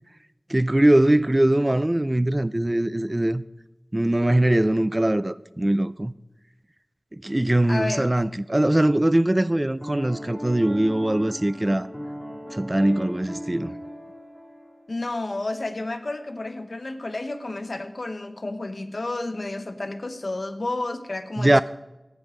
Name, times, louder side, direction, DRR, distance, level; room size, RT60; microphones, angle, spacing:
voice 1, 0.5-3.4 3.9-6.1 7.2-11.9 12.5-13.8 21.4-21.6, right 1 dB, 25° right, 0.4 m, -21 dB
voice 2, 7.7-8.1 14.9-21.6, left 2 dB, 65° left, 1.1 m, -31 dB
Piano, 9.8-15.1, equal, ahead, 4.3 m, -37 dB
15.0 x 9.2 x 5.0 m
wide cardioid pair, 50°, 0 cm